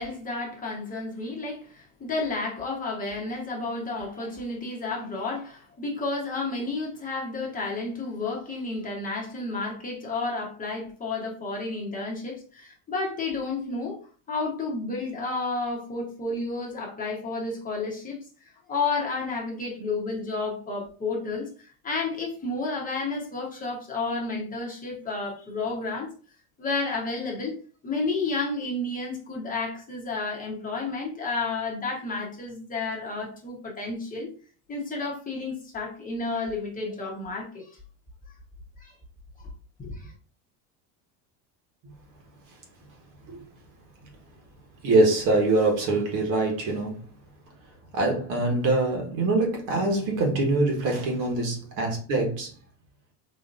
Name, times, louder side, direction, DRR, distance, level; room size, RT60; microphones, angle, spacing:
voice 1, 0.0-14.0 14.3-18.2 18.7-21.5 21.8-26.1 26.6-27.5 27.8-34.3 34.7-37.8 38.8-38.9 39.8-40.1, left 3 dB, 20° left, 1.0 m, -31 dB
voice 2, 44.8-47.0 47.9-52.5, right 2 dB, 55° right, 1.3 m, -24 dB
4.2 x 2.8 x 2.5 m
cardioid pair, 135°, 39 cm